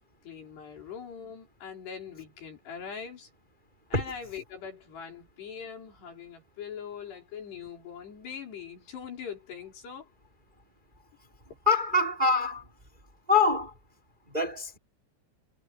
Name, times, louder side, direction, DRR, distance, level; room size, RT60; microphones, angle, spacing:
voice 1, 0.2-3.3 3.9-10.1, left 7 dB, 65° left, 7.0 m, -42 dB
voice 2, 11.7-12.6 13.3-13.7 14.3-14.8, left 3 dB, 10° right, 3.5 m, -25 dB
omnidirectional pair, 5.1 m